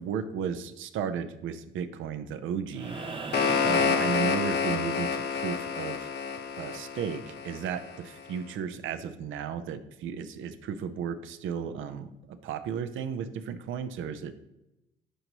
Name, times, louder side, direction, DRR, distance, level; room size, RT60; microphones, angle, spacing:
voice 1, 0.0-3.0 3.6-6.1 6.6-12.1 12.4-14.4, right 7 dB, 80° right, 11 dB, 0.6 m, -34 dB
sound 1, 2.7-5.0 6.9-7.0, right 4 dB, 25° right, 0.5 m, -39 dB
sound 2, 2.9-8.0, left 6 dB, 60° left, 0.9 m, -29 dB
10.0 x 5.4 x 3.0 m, 0.92 s
cardioid pair, 90°, 20 cm